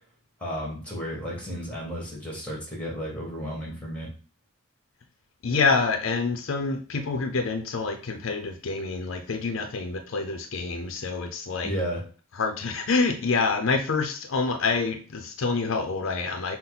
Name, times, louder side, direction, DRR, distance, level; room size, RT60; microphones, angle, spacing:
voice 1, 0.4-4.1 11.6-12.0, equal, 5° left, -3 dB, 1.6 m, -33 dB
voice 2, 5.4-11.7 12.4-16.6, left 4 dB, 75° left, 5 dB, 0.5 m, -27 dB
5.7 x 2.1 x 4.0 m, 0.39 s
head